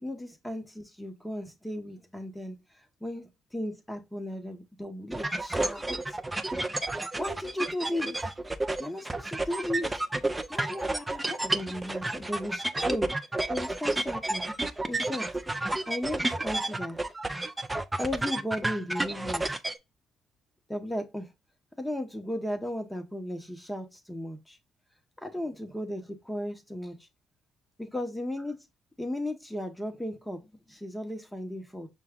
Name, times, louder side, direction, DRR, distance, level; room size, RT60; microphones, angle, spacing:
voice 1, 0.0-6.0 7.2-8.3 8.8-10.0 10.5-13.1 13.5-14.4 14.8-15.3 15.9-17.0 18.0-19.6 20.7-21.3 21.8-24.6 25.2-27.0 27.8-28.7 29.0-31.9, left 1 dB, 5° left, 0.9 m, -35 dB
sound 1, 5.1-19.8, right 2 dB, 15° right, 0.5 m, -31 dB
5.7 x 2.3 x 3.6 m
cardioid pair, 80°, 0 cm